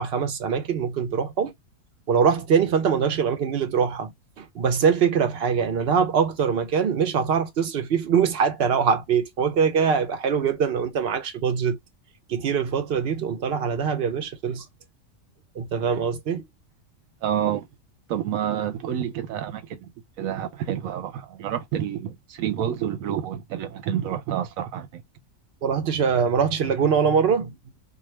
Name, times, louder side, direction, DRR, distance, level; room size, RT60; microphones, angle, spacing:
voice 1, 0.0-1.5 2.1-11.8 12.3-14.6 15.6-16.4 25.6-27.5, right 6 dB, 55° right, 0.8 m, -23 dB
voice 2, 17.2-17.7 18.1-19.9 20.2-25.0, right 10 dB, 80° right, 1.0 m, -28 dB
2.4 x 2.3 x 3.1 m
omnidirectional pair, 1.4 m